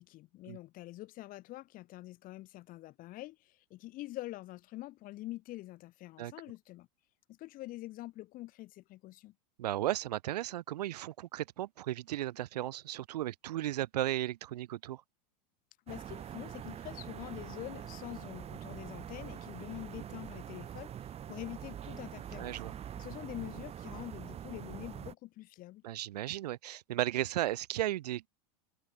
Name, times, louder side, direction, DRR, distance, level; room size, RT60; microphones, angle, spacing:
voice 1, 0.0-6.9 7.3-9.3 15.9-20.9 21.3-22.6 23.0-25.8, left 17 dB, 45° left, 3.7 m, -45 dB
voice 2, 9.6-15.0 20.0-20.1 22.4-22.7 25.8-28.3, right 14 dB, 80° right, 1.7 m, -35 dB
sound 1, 15.9-25.1, right 10 dB, 30° right, 5.9 m, -44 dB
hypercardioid pair, 115°, 20 cm